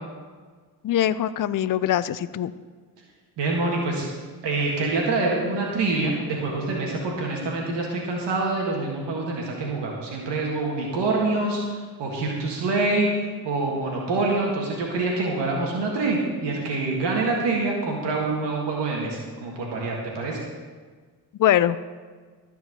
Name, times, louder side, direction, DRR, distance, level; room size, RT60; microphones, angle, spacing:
voice 1, 0.8-2.5 21.4-21.8, left 11 dB, 50° left, 15 dB, 0.5 m, -22 dB
voice 2, 3.4-4.1 4.4-13.1 13.4-20.4, right 3 dB, 85° right, -1 dB, 1.8 m, -26 dB
13.5 x 4.7 x 7.8 m, 1.5 s
cardioid pair, 70°, 41 cm